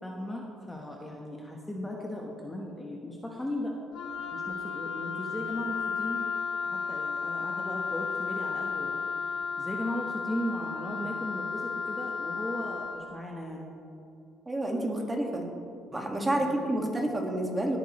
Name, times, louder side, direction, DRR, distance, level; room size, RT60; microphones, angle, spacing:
voice 1, 0.0-3.7 4.3-6.2 6.6-13.7 16.3-16.6, left 1 dB, 10° left, -1 dB, 1.2 m, -37 dB
Wind instrument woodwind instrument, 3.9-13.0, left 5 dB, 75° left, 1.2 m, -33 dB
voice 2, 14.5-15.5 15.9-17.8, right 1 dB, 15° right, 1 dB, 1.8 m, -29 dB
18.0 x 9.0 x 3.2 m, 2.6 s
cardioid pair, 110°, 0 cm